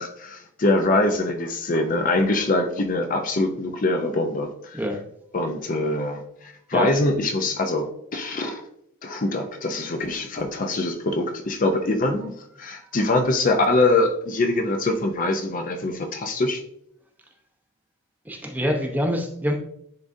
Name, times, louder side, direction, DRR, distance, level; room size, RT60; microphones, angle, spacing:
voice 1, 0.0-4.8 5.3-8.6 9.0-12.3 12.6-16.6, left 2 dB, 40° left, 5 dB, 0.5 m, -23 dB
voice 2, 18.3-19.5, equal, 10° right, 2 dB, 0.7 m, -25 dB
10.5 x 3.7 x 2.6 m, 0.72 s
head